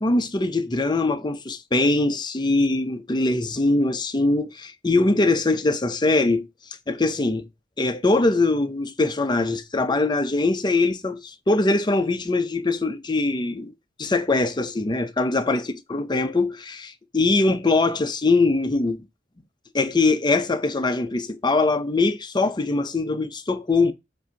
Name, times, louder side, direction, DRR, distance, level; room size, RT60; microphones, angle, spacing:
voice 1, 0.0-6.5 6.9-7.4 7.8-13.7 14.0-19.0 19.7-23.9, left 2 dB, 25° left, 0.6 m, -22 dB
7.7 x 2.7 x 5.7 m
head